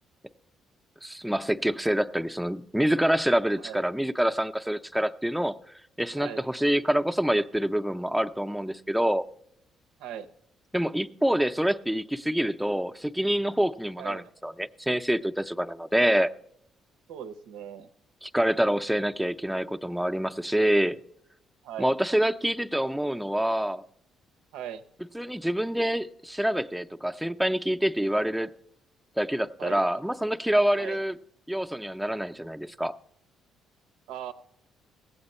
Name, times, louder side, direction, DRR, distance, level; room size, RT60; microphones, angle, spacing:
voice 1, 1.0-5.6 6.0-9.2 10.7-16.3 18.2-21.0 21.8-23.8 25.1-28.5 29.2-31.1 31.5-33.0, equal, 5° right, 0.5 m, -26 dB
voice 2, 3.6-3.9 6.2-6.5 10.0-10.3 14.0-14.3 17.1-17.9 21.6-21.9 24.5-24.8 29.6-29.9 30.8-31.0 34.1-34.3, right 9 dB, 90° right, 0.6 m, -39 dB
17.5 x 7.9 x 4.2 m
cardioid pair, 90°, 0 cm